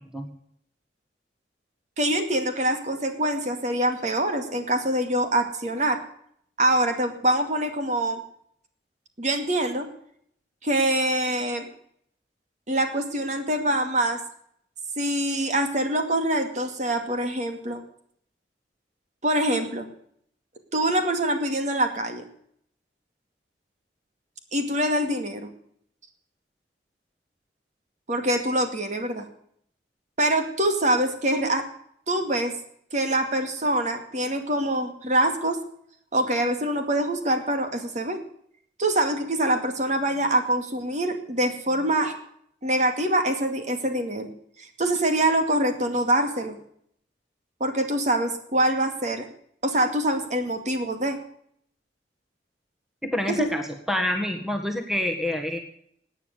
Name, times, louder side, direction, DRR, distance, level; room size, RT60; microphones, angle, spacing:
voice 1, 2.0-6.0 6.6-8.2 9.2-9.9 10.6-11.7 12.7-14.2 15.0-17.8 19.2-19.9 20.7-22.2 24.5-25.5 28.1-29.3 30.2-31.6 32.1-32.5 32.9-35.6 36.1-38.2 38.8-42.1 42.6-44.3 44.6-46.6 47.6-49.3 49.6-51.2 53.4-53.5, right 1 dB, 40° right, 6 dB, 2.3 m, -24 dB
voice 2, 53.0-55.6, left 1 dB, ahead, 4 dB, 1.7 m, -27 dB
18.0 x 9.3 x 6.7 m, 0.67 s
head